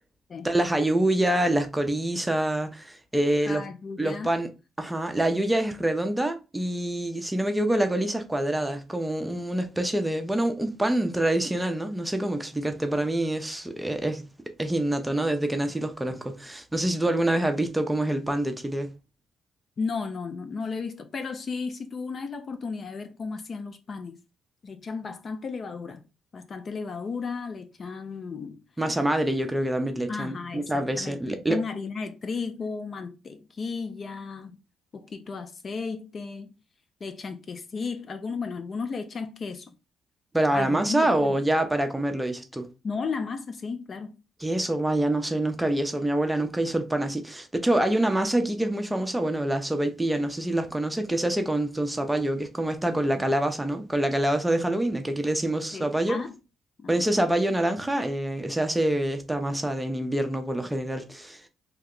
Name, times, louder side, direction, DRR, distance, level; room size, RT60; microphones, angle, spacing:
voice 1, 0.4-3.7 4.0-4.5 4.8-14.2 14.6-18.9 28.8-31.6 40.3-42.7 44.4-56.2 56.9-61.4, right 1 dB, 10° right, 0.6 m, -26 dB
voice 2, 3.5-4.3 19.8-24.2 24.6-26.0 26.3-28.6 30.1-34.6 34.9-36.5 37.0-39.7 40.5-41.4 42.8-44.2 53.2-53.3 55.7-56.4 56.8-57.0, left 4 dB, 45° left, 0.4 m, -34 dB
2.8 x 2.1 x 3.7 m
cardioid pair, 90°, 0 cm